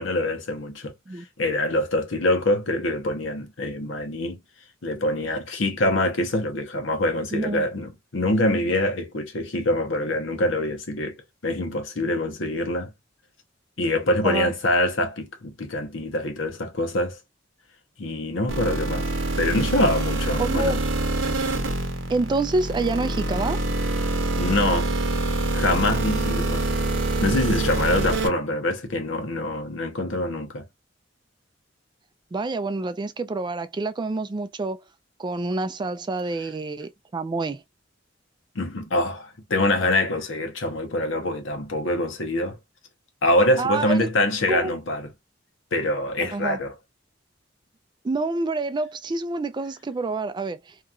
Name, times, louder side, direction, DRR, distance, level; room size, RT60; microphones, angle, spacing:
voice 1, 0.0-4.4 4.8-11.2 11.4-12.9 13.8-17.2 18.0-19.1 19.4-20.8 24.4-24.9 25.5-26.7 27.2-30.7 38.5-42.6 43.2-45.1 45.7-46.7, left 1 dB, 85° left, 0.9 m, -25 dB
voice 2, 7.3-7.7 14.2-14.5 20.4-20.8 22.1-23.6 32.3-34.8 35.2-37.6 43.6-44.1 44.5-44.7 46.2-46.6 48.0-50.7, right 3 dB, 25° right, 0.3 m, -27 dB
sound 1, 18.5-28.3, right 2 dB, 80° right, 0.8 m, -25 dB
2.9 x 2.4 x 2.4 m
head